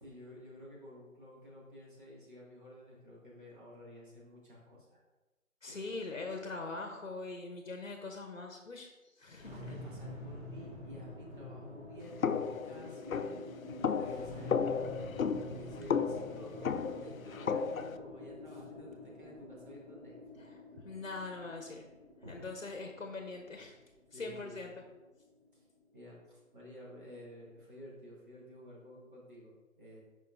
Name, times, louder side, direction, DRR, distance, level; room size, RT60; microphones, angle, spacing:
voice 1, 0.0-5.0 5.6-6.0 9.5-20.4 22.2-22.5 24.1-24.8 25.5-25.7 25.9-30.0, equal, 40° right, -5 dB, 2.0 m, -52 dB
voice 2, 5.6-9.7 20.4-21.9 22.3-23.8 24.1-24.7, left 3 dB, 60° left, 3 dB, 0.9 m, -42 dB
sound 1, 9.4-25.8, left 1 dB, 10° right, 1.7 m, -48 dB
sound 2, 12.2-18.0, left 6 dB, 80° left, 0.5 m, -34 dB
7.0 x 5.5 x 2.6 m, 1.1 s
figure-of-eight pair, 160°, 41 cm